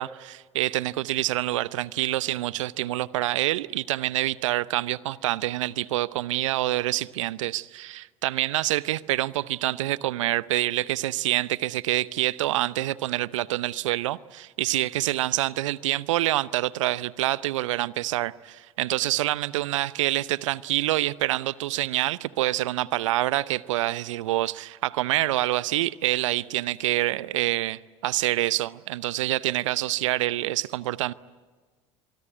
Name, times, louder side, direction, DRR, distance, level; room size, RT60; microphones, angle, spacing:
voice 1, 0.0-31.1, right 16 dB, 75° right, 0.8 m, -26 dB
24.5 x 24.0 x 9.8 m
hypercardioid pair, 70°, 16 cm